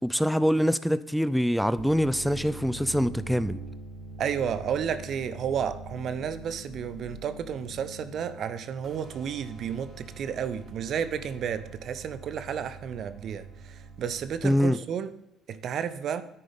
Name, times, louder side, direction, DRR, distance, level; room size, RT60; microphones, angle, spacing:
voice 1, 0.0-3.6 14.4-14.8, equal, ahead, 14 dB, 0.4 m, -24 dB
sound 1, 1.7-14.6, right 3 dB, 40° right, 3.9 m, -44 dB
voice 2, 4.2-15.1 15.5-16.2, right 8 dB, 55° right, 13 dB, 0.7 m, -32 dB
10.0 x 9.3 x 3.6 m, 0.88 s
hypercardioid pair, 60°, 0 cm